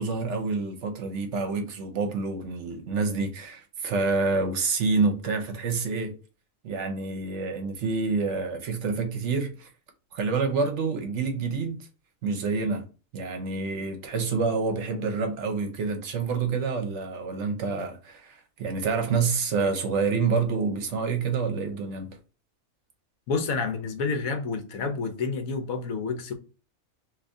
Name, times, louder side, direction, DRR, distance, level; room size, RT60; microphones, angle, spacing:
voice 1, 0.0-6.1 6.6-9.7 10.1-11.8 12.2-12.9 13.1-22.2, right 4 dB, 60° right, 1.0 m, -27 dB
voice 2, 23.3-26.3, left 4 dB, 80° left, 1.2 m, -29 dB
2.8 x 2.6 x 3.4 m
omnidirectional pair, 1.4 m